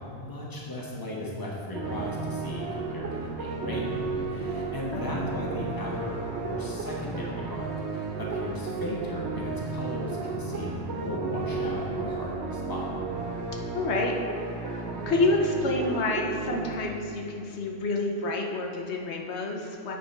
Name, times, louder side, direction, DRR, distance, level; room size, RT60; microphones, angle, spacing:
voice 1, 0.1-12.8, left 1 dB, 20° left, -4 dB, 1.2 m, -36 dB
sound 1, 1.7-16.7, right 4 dB, 85° right, 1.0 m, -33 dB
voice 2, 13.7-14.2 14.5-20.0, left 2 dB, 80° left, 1 dB, 1.1 m, -28 dB
8.2 x 4.9 x 4.4 m, 2.6 s
omnidirectional pair, 1.1 m